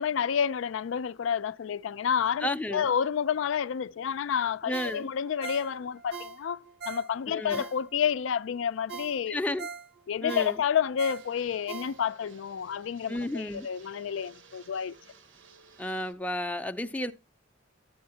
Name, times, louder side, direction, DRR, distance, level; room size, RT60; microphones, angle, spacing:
voice 1, 0.0-9.4 10.1-14.9, left 8 dB, 85° left, 0.4 m, -29 dB
voice 2, 2.4-2.9 4.7-5.1 7.3-7.6 9.3-9.7 10.2-10.6 13.1-13.7 15.8-17.1, left 1 dB, 5° left, 0.4 m, -32 dB
Ringtone, 4.7-8.2 8.6-8.7 8.9-12.3 12.7-12.8, right 5 dB, 60° right, 0.6 m, -42 dB
Fixed-wing aircraft airplane, 11.0-16.1, right 5 dB, 80° right, 1.1 m, -56 dB
11.0 x 8.6 x 2.8 m
head